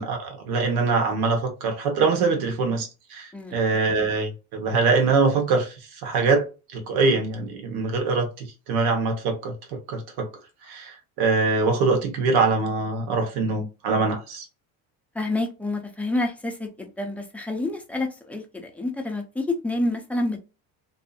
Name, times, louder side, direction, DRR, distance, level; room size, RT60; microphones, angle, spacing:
voice 1, 0.0-6.4 6.7-9.5 9.9-10.3 10.7-14.4, right 4 dB, 80° right, 1.1 m, -23 dB
voice 2, 15.2-20.4, left 2 dB, 5° left, 0.4 m, -28 dB
2.7 x 2.5 x 2.3 m
cardioid pair, 135°, 38 cm